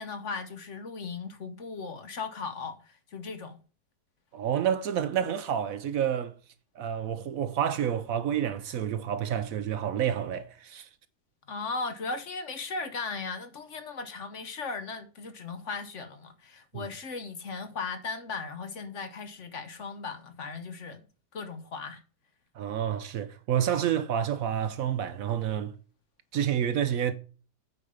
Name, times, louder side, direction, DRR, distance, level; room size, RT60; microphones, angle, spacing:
voice 1, 0.0-3.6 11.5-21.0 21.3-22.0, left 4 dB, 55° left, 1.1 m, -37 dB
voice 2, 4.3-6.3 6.8-10.9 16.7-16.9 22.6-25.7 26.3-27.1, right 9 dB, 65° right, 1.0 m, -29 dB
8.6 x 5.3 x 4.9 m
omnidirectional pair, 1.7 m